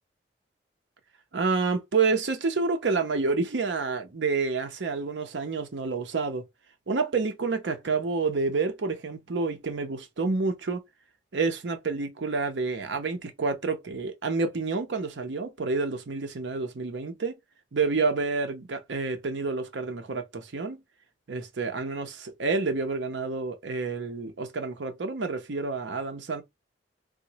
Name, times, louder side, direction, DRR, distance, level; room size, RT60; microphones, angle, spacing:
voice 1, 1.3-6.4 6.9-10.8 11.3-17.4 17.7-20.8 21.3-26.4, right 4 dB, 75° right, 0.7 m, -29 dB
3.7 x 2.1 x 2.9 m
head